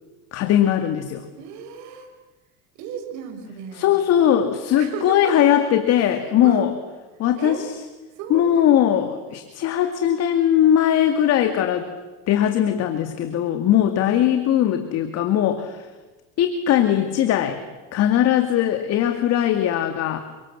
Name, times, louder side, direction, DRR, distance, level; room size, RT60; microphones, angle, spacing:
voice 1, 0.3-1.3 3.8-6.7 7.2-7.6 8.3-11.9 12.3-15.9 16.4-17.6 17.9-20.2, left 10 dB, 55° left, 7 dB, 2.4 m, -20 dB
voice 2, 1.4-2.1 2.7-3.9 4.8-5.7 6.1-6.7 7.3-7.7 8.1-9.0, right 6 dB, 70° right, 5 dB, 6.4 m, -35 dB
30.0 x 24.5 x 7.5 m, 1.2 s
supercardioid pair, 115°, 31 cm